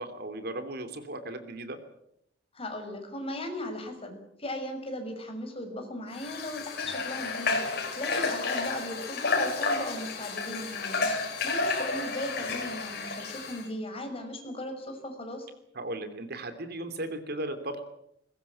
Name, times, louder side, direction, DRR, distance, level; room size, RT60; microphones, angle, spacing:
voice 1, 0.0-1.8 15.7-17.8, right 1 dB, 55° right, 9 dB, 3.0 m, -36 dB
voice 2, 2.5-7.6 8.0-11.1 11.4-15.5, left 1 dB, 30° left, 5 dB, 5.8 m, -37 dB
Water / Water tap faucet, 6.1-13.7, left 3 dB, 55° left, 6.6 m, -31 dB
22.0 x 20.5 x 8.6 m, 0.75 s
head